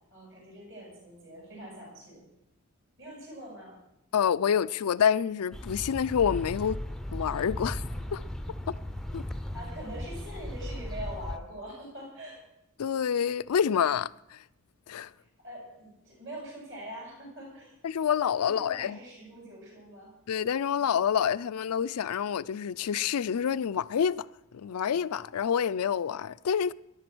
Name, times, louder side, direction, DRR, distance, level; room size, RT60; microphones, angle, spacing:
voice 1, 0.1-2.3 3.0-3.8 9.5-12.4 15.4-17.7 18.4-20.1, equal, 55° right, 7.2 m, -43 dB
voice 2, 4.1-6.8 7.1-7.8 8.1-8.2 9.1-9.2 12.8-14.4 14.9-15.1 17.8-19.0 20.3-24.3 24.5-26.7, left 8 dB, 90° left, 0.4 m, -27 dB
sound 1, 5.5-11.4, left 1 dB, ahead, 0.5 m, -37 dB
14.0 x 11.0 x 6.1 m
head